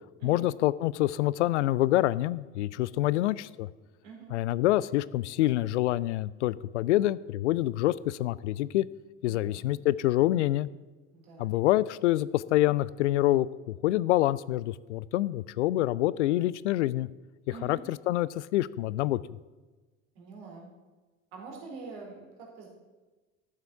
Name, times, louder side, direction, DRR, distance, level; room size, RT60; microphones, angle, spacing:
voice 1, 0.2-3.7 4.3-8.9 9.2-10.7 11.4-17.1 17.6-19.2, left 15 dB, 65° left, 19 dB, 0.5 m, -26 dB
voice 2, 9.2-9.6 11.1-11.5 17.5-17.8 20.2-20.7 21.3-22.7, right 4 dB, 60° right, -1 dB, 4.0 m, -45 dB
13.0 x 7.4 x 6.9 m, 1.3 s
figure-of-eight pair, 65°, 38 cm